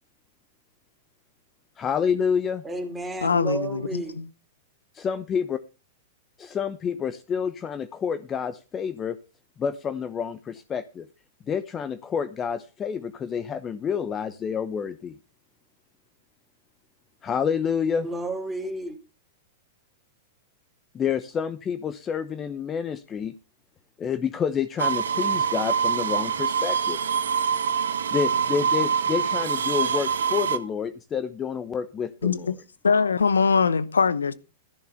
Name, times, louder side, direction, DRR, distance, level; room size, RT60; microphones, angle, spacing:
voice 1, 1.8-2.6 4.9-5.6 6.4-9.2 9.6-11.0 11.5-15.1 17.2-18.1 20.9-23.3 24.0-27.0 28.1-32.5, left 7 dB, 25° left, 0.9 m, -28 dB
voice 2, 2.6-4.2 18.0-19.0, right 2 dB, 10° right, 3.5 m, -32 dB
voice 3, 3.2-4.0 32.2-32.5 32.8-34.3, left 5 dB, 90° left, 0.9 m, -22 dB
sound 1, 24.8-30.6, right 7 dB, 80° right, 1.4 m, -25 dB
14.0 x 7.1 x 5.8 m
hypercardioid pair, 110°, 0 cm